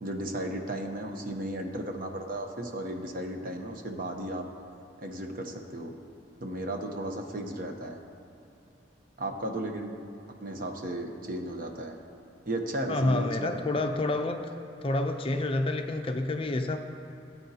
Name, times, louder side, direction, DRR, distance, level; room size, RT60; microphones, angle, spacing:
voice 1, 0.0-4.5 5.0-6.0 6.4-8.0 9.2-10.0 10.4-11.9 12.5-13.6, right 1 dB, 50° right, 4 dB, 0.8 m, -35 dB
voice 2, 12.9-14.4 14.8-16.8, left 2 dB, 30° left, 5 dB, 0.5 m, -28 dB
17.0 x 8.4 x 2.8 m, 2.9 s
head